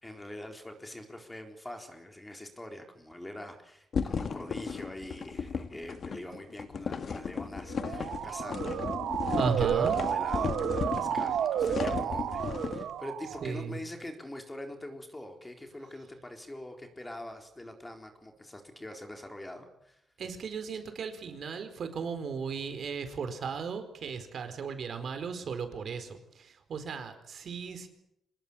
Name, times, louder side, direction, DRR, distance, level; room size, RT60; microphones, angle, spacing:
voice 1, 0.0-9.2 9.6-20.0, left 1 dB, 10° left, 4 dB, 4.0 m, -44 dB
sound 1, 3.9-12.9, left 6 dB, 45° left, 1.6 m, -35 dB
Motor vehicle (road) / Siren, 7.7-13.6, right 9 dB, 80° right, 1.3 m, -31 dB
voice 2, 9.3-10.0 13.4-13.8 20.2-27.9, right 6 dB, 55° right, 8 dB, 4.5 m, -36 dB
26.0 x 20.0 x 8.7 m, 0.77 s
cardioid pair, 140°, 0 cm